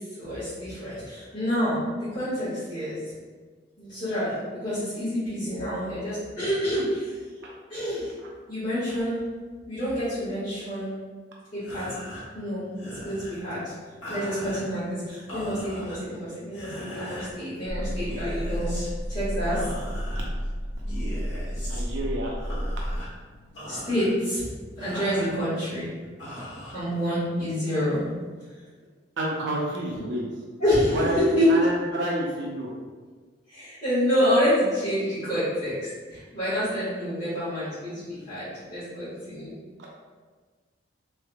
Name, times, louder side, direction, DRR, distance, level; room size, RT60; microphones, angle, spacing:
voice 1, 0.1-1.8 2.1-3.0 3.8-7.1 7.7-8.1 8.5-9.2 9.7-10.9 11.5-12.0 12.3-12.7 13.0-13.7 14.1-18.8 19.1-19.6 23.7-24.5 24.8-25.9 26.7-28.0 29.9-30.0 30.6-31.5 33.5-39.5, equal, 40° left, -16 dB, 1.5 m, -27 dB
sound 1, 11.6-27.4, equal, 65° left, 1.3 m, -41 dB
sound 2, 17.6-23.0, equal, 5° left, 1.4 m, -31 dB
voice 2, 21.6-22.4 29.2-30.2 30.9-31.2 31.5-32.7 39.8-39.9, right 1 dB, 85° right, -3 dB, 0.6 m, -29 dB
3.4 x 3.3 x 2.3 m, 1.4 s
head